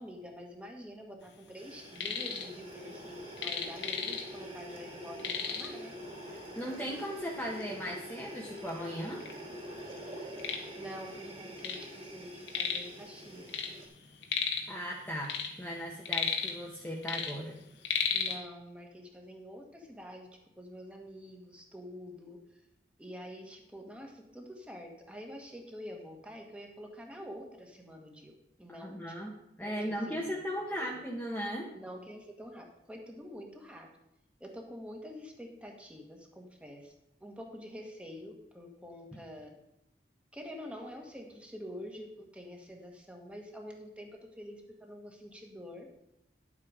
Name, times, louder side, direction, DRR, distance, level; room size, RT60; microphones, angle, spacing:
voice 1, 0.0-5.9 10.7-13.6 18.1-20.3 20.6-22.6 23.0-28.3 28.6-29.1 29.6-30.4 30.7-31.0 31.7-33.9 34.4-36.9 37.2-39.5 40.3-45.9, equal, 5° right, 2 dB, 1.5 m, -47 dB
sound 1, 1.6-13.9, right 1 dB, 35° right, 3.0 m, -46 dB
sound 2, 1.7-2.5 2.8-4.5 4.8-4.9 5.2-5.9 6.6-6.7 7.3-7.4 8.1-8.2 8.5-9.3 9.8-11.9 12.1-13.0 13.2-14.8 15.1-16.8 17.0-18.4, left 6 dB, 85° left, 1.5 m, -34 dB
voice 2, 6.3-9.2 14.7-17.6 28.8-29.3 29.6-31.7, equal, 10° left, -2 dB, 1.0 m, -37 dB
10.5 x 7.7 x 4.9 m, 0.84 s
head